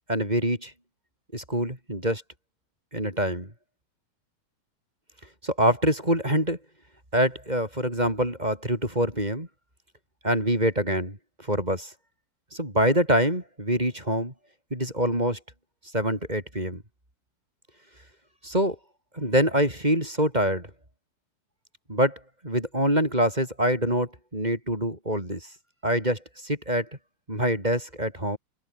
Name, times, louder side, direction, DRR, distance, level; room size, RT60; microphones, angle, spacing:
voice 1, 0.1-0.7 1.3-2.2 2.9-3.5 5.4-6.6 7.1-9.5 10.2-11.2 11.5-11.9 12.5-14.3 14.7-15.4 15.9-16.8 18.4-18.8 19.1-20.7 21.9-25.5 25.8-26.9 27.3-28.4, right 1 dB, 10° right, 6.6 m, -25 dB
omnidirectional pair, 4.2 m